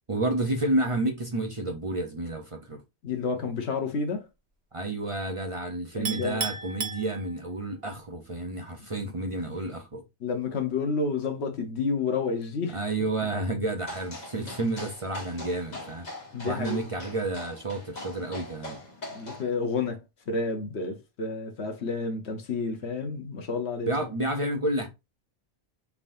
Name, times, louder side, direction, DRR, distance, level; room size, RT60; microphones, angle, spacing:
voice 1, 0.1-2.8 4.7-10.0 12.7-16.1 16.4-18.8 23.9-24.9, right 2 dB, 35° right, 0.7 m, -30 dB
voice 2, 3.0-4.3 5.9-6.5 10.2-12.8 16.3-16.8 19.1-23.9, left 4 dB, 70° left, 1.2 m, -30 dB
Chink clink, 6.1-7.7, right 5 dB, 70° right, 1.1 m, -34 dB
sound 1, 13.8-19.4, left 1 dB, 40° left, 1.5 m, -42 dB
5.6 x 3.5 x 2.6 m
omnidirectional pair, 1.2 m